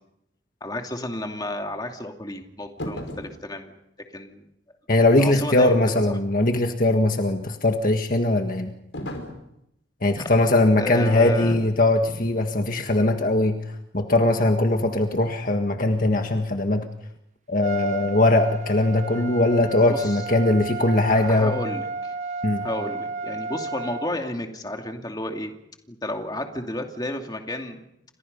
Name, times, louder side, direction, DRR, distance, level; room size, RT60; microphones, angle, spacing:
voice 1, 0.6-3.7 4.1-4.5 5.2-6.0 10.2-10.3 10.8-11.7 19.8-20.2 21.1-22.1 22.6-25.5 25.9-27.8, left 1 dB, 20° left, 3 dB, 2.6 m, -32 dB
sound 1, 2.8-3.4 8.9-9.5 11.4-11.7 12.1-12.3, equal, 80° left, 5.3 m, -35 dB
voice 2, 4.9-8.7 10.0-13.6 13.9-16.8 17.5-21.5 22.4-22.7, left 2 dB, 45° left, 5 dB, 1.7 m, -20 dB
Trumpet, 17.6-24.1, right 3 dB, 40° right, 1.0 m, -33 dB
30.0 x 26.0 x 5.5 m, 0.79 s
head